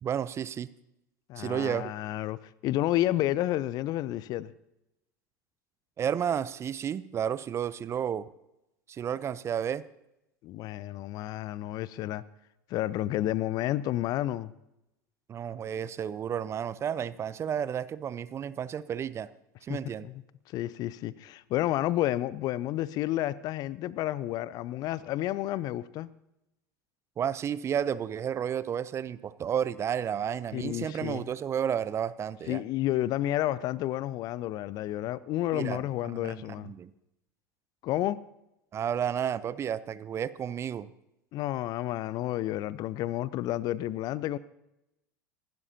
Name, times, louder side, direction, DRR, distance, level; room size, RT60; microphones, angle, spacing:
voice 1, 0.0-0.7 1.4-1.9 6.0-8.3 8.9-9.8 15.3-19.3 19.6-20.1 27.2-32.6 35.5-36.9 38.7-40.9, right 8 dB, 30° right, 0.6 m, -32 dB
voice 2, 1.3-4.5 10.4-12.2 12.7-14.5 19.7-19.8 20.0-20.1 20.5-26.1 30.5-31.3 32.5-36.7 37.8-38.2 41.3-44.4, left 14 dB, 40° left, 0.6 m, -30 dB
25.5 x 12.0 x 2.8 m
figure-of-eight pair, 75°, 10 cm